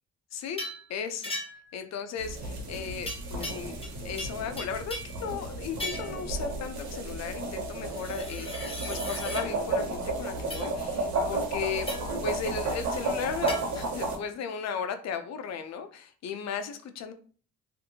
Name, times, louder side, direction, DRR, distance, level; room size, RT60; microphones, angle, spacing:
voice 1, 0.3-0.6 0.9-1.3 1.7-3.7 4.0-11.9 12.2-17.1, left 7 dB, 60° left, 8 dB, 0.5 m, -36 dB
sound 1, 0.6-0.9 1.2-1.7 3.1-3.9 4.2-5.2 5.8-6.2 7.9-9.5 10.5-10.7 11.9-12.2 13.5-13.6, left 1 dB, 20° left, 1.1 m, -37 dB
sound 2, 2.2-14.2, right 2 dB, 70° right, 1.0 m, -33 dB
2.6 x 2.5 x 2.6 m, 0.43 s
cardioid pair, 90°, 30 cm